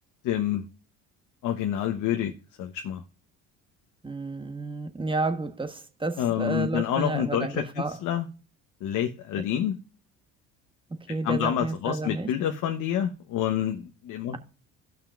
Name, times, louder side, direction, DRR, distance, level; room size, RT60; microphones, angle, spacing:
voice 1, 0.2-0.7 1.4-2.3 2.6-3.0 6.2-8.3 8.8-9.8 11.2-14.4, left 10 dB, 60° left, 1.1 m, -28 dB
voice 2, 4.0-8.0 11.1-12.3, right 3 dB, 15° right, 1.3 m, -31 dB
17.0 x 5.9 x 2.5 m
supercardioid pair, 80°, 34 cm